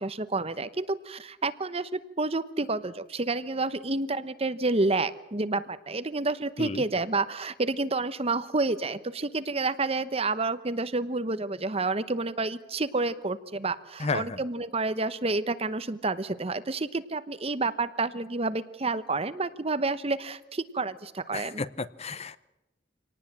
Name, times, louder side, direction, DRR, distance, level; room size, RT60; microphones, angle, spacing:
voice 1, 0.0-21.6, right 3 dB, 35° right, 12 dB, 1.0 m, -29 dB
voice 2, 14.0-14.4 21.3-22.4, left 3 dB, 35° left, 15 dB, 0.7 m, -32 dB
25.5 x 18.5 x 7.5 m, 0.99 s
head